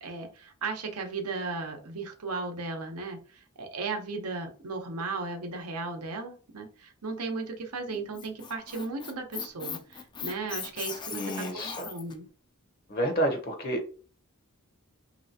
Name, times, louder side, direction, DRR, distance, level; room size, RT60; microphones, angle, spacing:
voice 1, 0.0-12.3, right 3 dB, 85° right, 4 dB, 0.7 m, -36 dB
Squeak, 7.9-12.1, left 6 dB, 20° left, 0.3 m, -39 dB
voice 2, 11.1-11.9 12.9-13.8, right 1 dB, 45° left, 4 dB, 0.7 m, -29 dB
3.1 x 2.8 x 2.7 m, 0.40 s
head